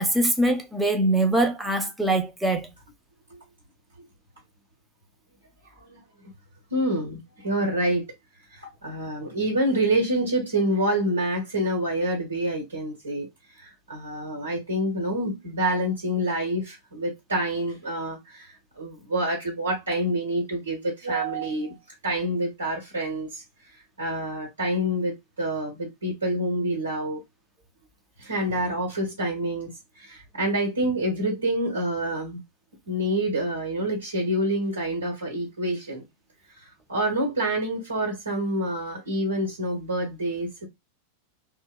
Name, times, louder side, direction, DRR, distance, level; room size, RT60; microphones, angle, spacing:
voice 1, 0.0-2.7, right 2 dB, 5° right, 0.6 m, -23 dB
voice 2, 6.7-8.0 8.5-13.3 13.6-21.8 22.0-23.4 24.0-27.2 28.2-29.7 30.0-32.4 32.9-36.0 36.9-40.7, right 1 dB, 75° right, 1.0 m, -27 dB
2.8 x 2.1 x 2.2 m
figure-of-eight pair, 90°, 0 cm